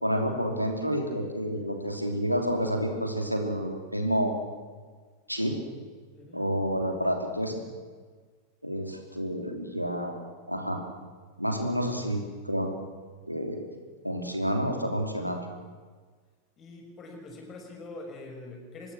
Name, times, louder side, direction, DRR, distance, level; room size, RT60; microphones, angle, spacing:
voice 1, 0.0-4.3 5.3-5.6 6.3-7.6 8.6-10.2 10.5-10.8 11.4-12.7 13.3-13.6 14.0-15.4, equal, 90° right, 3 dB, 3.0 m, -29 dB
voice 2, 6.1-6.5 16.6-18.9, left 2 dB, 30° left, 3 dB, 6.0 m, -44 dB
25.5 x 20.0 x 6.3 m, 1.5 s
figure-of-eight pair, 90°, 0 cm